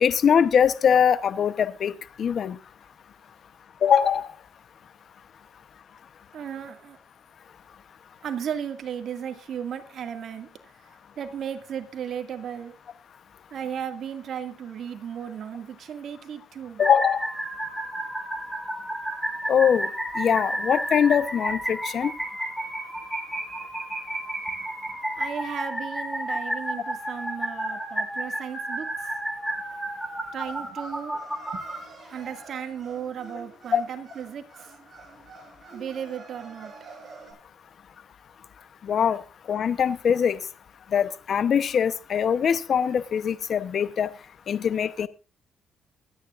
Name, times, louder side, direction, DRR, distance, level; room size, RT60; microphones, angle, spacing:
voice 1, 0.0-1.9 2.2-2.6 3.8-4.3 16.8-17.3 19.5-19.9 20.2-22.1 33.7-33.8 38.8-39.2 39.5-40.4 40.9-44.1 44.5-45.1, left 7 dB, 55° left, 14 dB, 0.9 m, -22 dB
voice 2, 6.3-7.0 8.2-10.5 10.8-12.7 13.5-16.8 24.6-29.1 30.3-31.2 31.5-31.6 32.1-34.8 35.7-36.7, right 8 dB, 65° right, 7 dB, 2.1 m, -35 dB
sound 1, 16.8-31.8, right 1 dB, 5° right, 8.0 m, -31 dB
sound 2, 30.4-37.3, right 3 dB, 35° right, 7.4 m, -48 dB
23.5 x 9.7 x 2.5 m, 0.30 s
cardioid pair, 90°, 0 cm